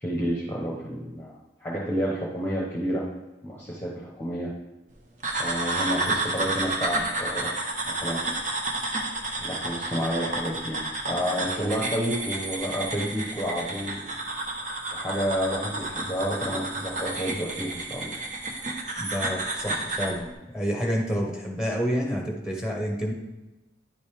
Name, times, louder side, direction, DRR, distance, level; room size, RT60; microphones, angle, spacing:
voice 1, 0.0-3.0 3.4-4.5 5.4-7.5 7.8-8.2 9.4-14.1 14.9-18.2, equal, 10° left, -4 dB, 1.0 m, -30 dB
sound 1, 5.2-20.2, right 2 dB, 45° right, 1.0 m, -31 dB
voice 2, 19.0-20.3 20.5-23.1, equal, 5° right, -1 dB, 1.3 m, -28 dB
10.5 x 5.3 x 3.4 m, 1.0 s
head